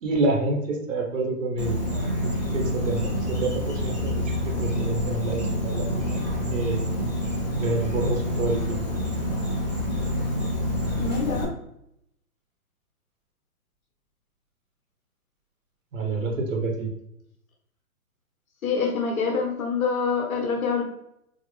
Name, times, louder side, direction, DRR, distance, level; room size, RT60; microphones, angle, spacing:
voice 1, 0.0-6.8 7.5-8.8 15.9-16.9, right 2 dB, 55° right, 1 dB, 0.9 m, -28 dB
Insect, 1.6-11.4, left 1 dB, 30° left, 0.4 m, -27 dB
voice 2, 11.0-11.5 16.2-16.4 18.6-20.8, left 5 dB, 60° left, 0 dB, 1.2 m, -26 dB
4.0 x 2.1 x 3.1 m, 0.77 s
hypercardioid pair, 170°, 46 cm